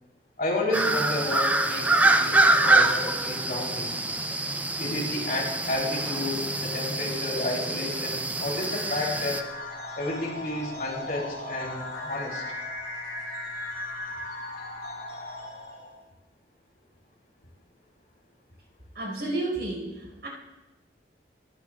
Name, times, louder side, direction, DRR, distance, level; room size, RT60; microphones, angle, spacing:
voice 1, 0.4-3.9 4.8-9.4 9.9-12.4, left 2 dB, 55° left, -2 dB, 3.4 m, -31 dB
sound 1, 0.7-9.4, right 2 dB, 10° right, 0.5 m, -25 dB
sound 2, 8.4-16.0, left 2 dB, 75° left, 3.9 m, -37 dB
voice 2, 18.9-20.3, right 2 dB, 70° right, -1 dB, 5.0 m, -31 dB
22.0 x 10.5 x 2.4 m, 1.1 s
head